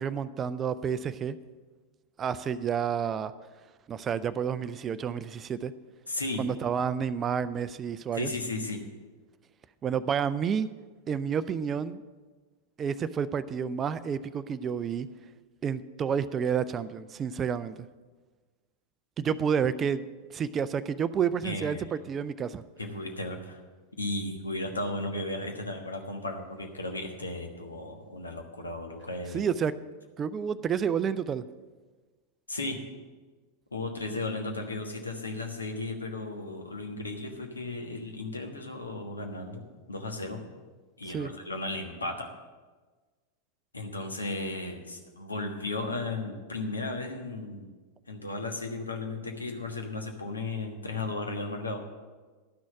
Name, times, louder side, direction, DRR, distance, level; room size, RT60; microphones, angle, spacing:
voice 1, 0.0-1.4 2.2-3.3 3.9-5.7 6.4-8.3 9.8-10.7 11.1-12.0 12.8-15.1 15.6-17.9 19.2-20.1 20.3-22.6 29.3-29.7 30.2-31.4 41.1-41.3, right 7 dB, 25° right, 14 dB, 0.4 m, -30 dB
voice 2, 6.1-6.4 8.1-8.8 21.4-21.8 22.8-23.6 24.0-29.4 32.5-32.9 33.7-40.4 41.0-42.3 43.7-47.7 48.1-51.8, left 2 dB, 75° left, 4 dB, 1.3 m, -35 dB
12.0 x 6.2 x 7.4 m, 1.3 s
figure-of-eight pair, 90°, 0 cm